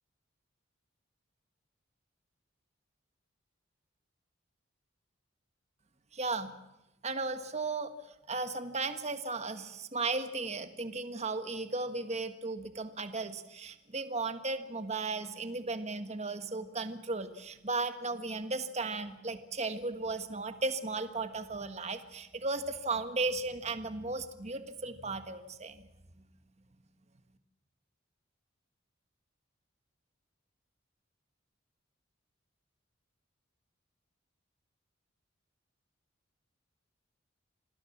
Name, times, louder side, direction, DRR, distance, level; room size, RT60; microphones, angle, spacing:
voice 1, 6.1-6.5 7.0-7.9 8.3-25.8, right 3 dB, 35° right, 9 dB, 1.5 m, -35 dB
27.0 x 19.0 x 7.3 m, 0.94 s
head